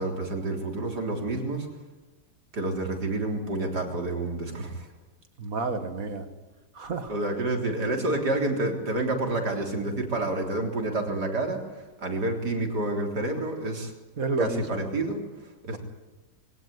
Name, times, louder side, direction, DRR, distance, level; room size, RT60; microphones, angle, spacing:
voice 1, 0.0-1.7 2.5-4.9 7.1-13.9 14.4-15.8, right 2 dB, 70° right, 2 dB, 4.3 m, -29 dB
voice 2, 5.4-6.3 6.8-7.1 14.2-14.6 15.7-15.8, right 3 dB, 55° right, 8 dB, 2.2 m, -30 dB
22.5 x 18.0 x 9.8 m, 1.2 s
omnidirectional pair, 1.8 m